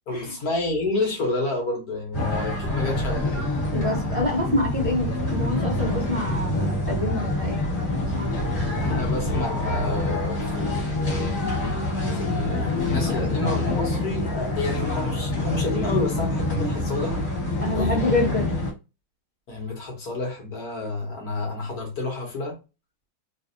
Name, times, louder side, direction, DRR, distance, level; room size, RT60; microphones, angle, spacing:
voice 1, 0.1-3.4 8.8-11.4 12.2-17.2 17.7-18.0 19.5-22.6, left 2 dB, 55° left, 1.4 m, -29 dB
sound 1, 2.1-18.7, left 2 dB, 30° left, 1.7 m, -26 dB
voice 2, 3.7-8.4 17.6-18.6, left 2 dB, 35° right, 0.6 m, -27 dB
3.2 x 2.5 x 2.6 m
omnidirectional pair, 2.1 m